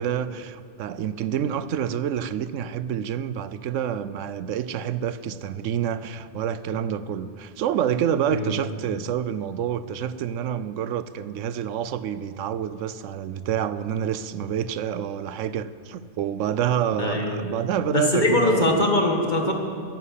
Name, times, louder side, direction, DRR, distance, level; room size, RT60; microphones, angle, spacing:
voice 1, 0.0-18.9, right 9 dB, 85° right, 14 dB, 1.0 m, -28 dB
voice 2, 17.0-17.3 17.9-19.5, left 1 dB, 40° left, 1 dB, 2.0 m, -22 dB
14.5 x 11.0 x 8.4 m, 2.3 s
omnidirectional pair, 1.3 m